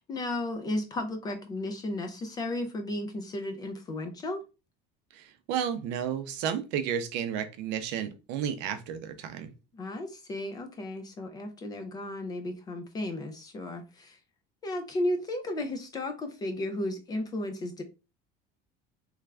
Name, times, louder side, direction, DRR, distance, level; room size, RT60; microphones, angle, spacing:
voice 1, 0.0-4.4 9.7-14.2 14.6-17.8, left 1 dB, 20° left, 0.4 m, -34 dB
voice 2, 5.1-9.5, right 8 dB, 60° right, 0.5 m, -32 dB
3.3 x 2.4 x 3.2 m
cardioid pair, 175°, 21 cm